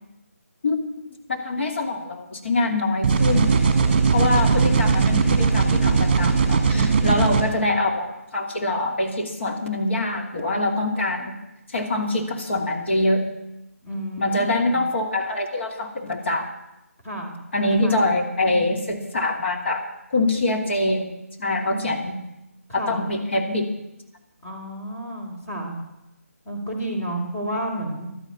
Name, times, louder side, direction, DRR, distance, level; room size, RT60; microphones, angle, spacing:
voice 1, 1.3-3.6 4.1-11.4 11.7-13.3 14.2-16.5 17.5-21.1 21.4-22.2 22.7-23.7, left 2 dB, 50° left, 2 dB, 2.6 m, -24 dB
sound 1, 3.0-7.4, right 5 dB, 30° right, 2.0 m, -19 dB
voice 2, 6.7-7.3 13.8-14.8 17.0-17.3 17.6-18.7 21.6-22.0 22.7-23.0 24.4-25.8 26.4-28.1, right 1 dB, 15° left, -3 dB, 3.2 m, -31 dB
12.5 x 10.0 x 8.3 m, 0.93 s
figure-of-eight pair, 155°, 8 cm